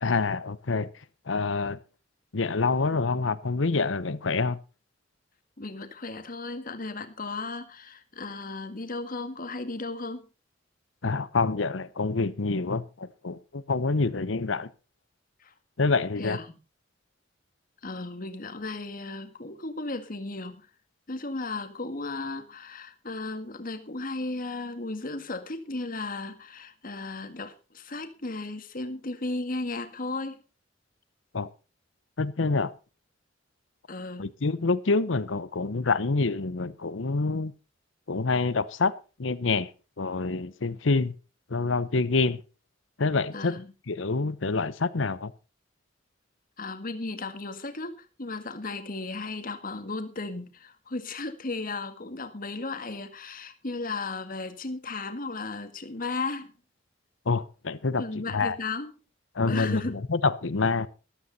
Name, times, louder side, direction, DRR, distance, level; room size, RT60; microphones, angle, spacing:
voice 1, 0.0-0.9 1.3-1.8 2.3-4.6 11.0-14.7 15.8-16.4 31.3-31.5 32.2-32.7 34.2-37.5 38.1-38.9 39.2-39.7 40.0-41.1 41.5-42.4 43.0-43.6 43.9-45.3 57.3-58.0 58.3-58.6 59.4-60.9, left 3 dB, 85° left, 0.8 m, -26 dB
voice 2, 5.6-10.3 15.4-15.5 16.2-16.6 17.8-20.7 21.1-30.4 33.9-34.3 43.3-43.7 46.6-56.5 58.0-58.9 59.5-60.0, left 3 dB, 50° left, 1.8 m, -35 dB
14.0 x 12.5 x 4.1 m
head